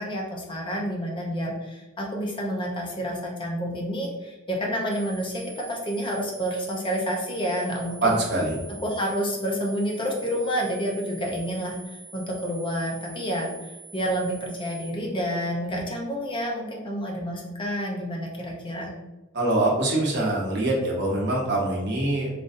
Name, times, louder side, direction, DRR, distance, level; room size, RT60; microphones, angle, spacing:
voice 1, 0.0-8.2 8.8-18.9, equal, 25° left, -1 dB, 0.6 m, -29 dB
sound 1, 4.9-14.9, right 5 dB, 85° right, 0.5 m, -46 dB
voice 2, 8.0-8.6 19.3-22.3, right 2 dB, 60° right, -3 dB, 1.0 m, -24 dB
3.8 x 2.5 x 2.5 m, 1.1 s
head